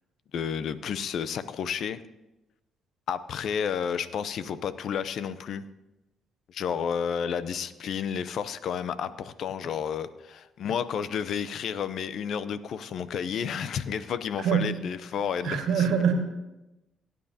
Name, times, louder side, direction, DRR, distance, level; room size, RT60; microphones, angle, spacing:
voice 1, 0.3-2.0 3.1-5.6 6.5-15.9, left 7 dB, 70° left, 14 dB, 0.6 m, -31 dB
voice 2, 14.4-14.8 15.4-16.1, right 7 dB, 85° right, 4 dB, 1.7 m, -24 dB
18.5 x 9.4 x 2.8 m, 1.0 s
cardioid pair, 90°, 0 cm